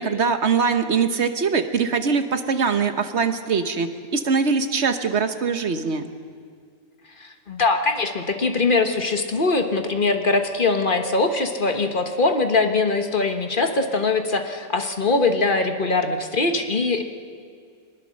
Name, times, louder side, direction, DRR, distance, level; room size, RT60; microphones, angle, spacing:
voice 1, 0.0-6.1, right 5 dB, 45° right, 9 dB, 1.1 m, -22 dB
voice 2, 7.2-17.0, left 3 dB, 35° left, 6 dB, 1.3 m, -22 dB
23.5 x 20.0 x 6.4 m, 2.1 s
omnidirectional pair, 1.8 m